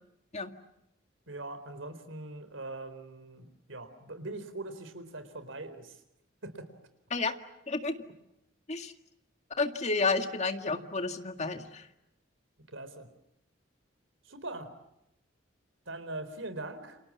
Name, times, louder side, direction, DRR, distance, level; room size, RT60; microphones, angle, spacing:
voice 1, 1.3-6.0 6.4-6.7 12.7-13.1 14.2-14.7 15.9-17.0, right 2 dB, 85° right, 11 dB, 4.1 m, -41 dB
voice 2, 9.6-11.8, left 3 dB, 35° left, 6 dB, 2.0 m, -31 dB
29.5 x 27.5 x 7.3 m, 0.85 s
head